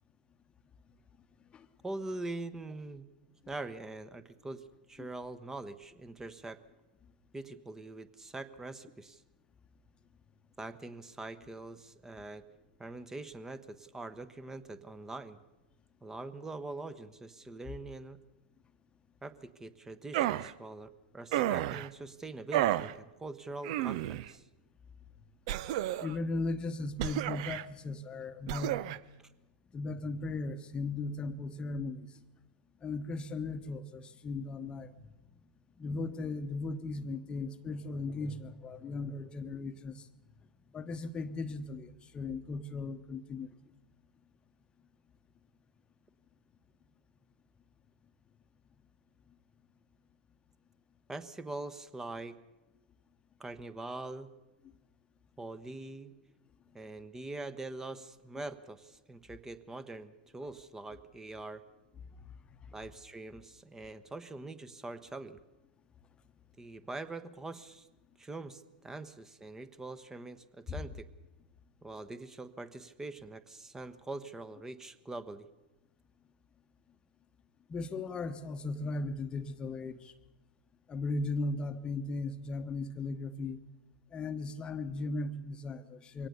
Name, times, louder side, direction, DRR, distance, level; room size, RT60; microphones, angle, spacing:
voice 1, 1.8-3.0 3.5-6.6 7.3-9.2 10.6-12.5 12.8-15.4 16.0-18.2 19.2-24.4 51.1-52.4 53.4-54.3 55.4-56.1 56.7-61.6 62.7-65.4 66.6-67.9 68.2-71.1 71.8-75.5, right 2 dB, 10° right, 14 dB, 1.2 m, -43 dB
sound 1, 20.1-20.5 21.3-21.9 22.5-22.9 23.6-24.3 25.5-26.2 27.0-27.6 28.5-29.0, right 13 dB, 50° right, 0.7 m, -31 dB
voice 2, 26.0-28.8 29.7-32.1 32.8-34.9 35.8-40.1 40.7-43.5 70.7-70.8 77.7-80.1 80.9-83.6 84.1-86.3, left 3 dB, 20° left, 9 dB, 1.1 m, -37 dB
23.0 x 18.0 x 6.8 m, 1.0 s
hypercardioid pair, 105°, 5 cm